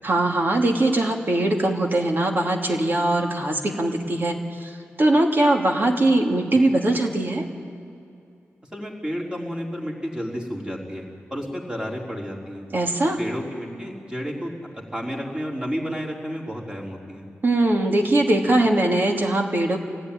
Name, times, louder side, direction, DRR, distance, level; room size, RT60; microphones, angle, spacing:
voice 1, 0.0-7.4 12.7-13.2 17.4-19.8, right 1 dB, 40° right, 1 dB, 2.6 m, -21 dB
voice 2, 8.7-11.0 11.3-12.6 13.2-14.5 14.9-17.2, equal, 15° right, -2 dB, 4.0 m, -31 dB
24.5 x 16.5 x 10.0 m, 2.5 s
wide cardioid pair, 115°, 5 cm